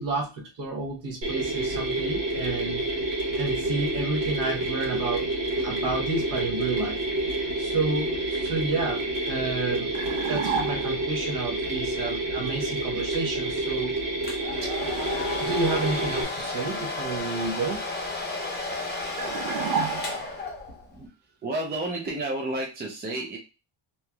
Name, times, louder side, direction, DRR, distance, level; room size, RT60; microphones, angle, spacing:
voice 1, 0.0-3.1 3.4-5.3 5.6-7.0 7.3-9.9 10.2-14.0 14.6-14.7 15.4-17.8, right 3 dB, 45° right, 1 dB, 0.9 m, -30 dB
Mechanisms, 1.2-16.2, right 2 dB, 70° right, 1.1 m, -29 dB
sound 1, 9.9-11.1 19.2-20.5, right 6 dB, 90° right, 0.6 m, -30 dB
Domestic sounds home sounds, 14.2-20.9, left 3 dB, 25° left, 0.6 m, -32 dB
voice 2, 20.7-21.1 21.4-23.4, right 2 dB, 25° right, 0 dB, 0.4 m, -31 dB
3.2 x 2.7 x 2.2 m, 0.29 s
cardioid pair, 170°, 45 cm